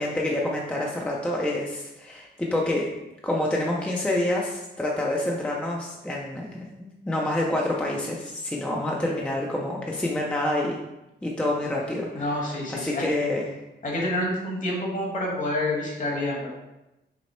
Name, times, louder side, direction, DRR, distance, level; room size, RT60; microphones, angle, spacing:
voice 1, 0.0-2.9 3.2-10.8 11.2-12.3 12.7-13.5, left 1 dB, 5° left, -2 dB, 0.5 m, -27 dB
voice 2, 12.1-13.1 13.8-16.5, left 1 dB, 45° left, -3 dB, 1.3 m, -28 dB
5.9 x 2.0 x 4.3 m, 0.97 s
wide cardioid pair, 135°, 19 cm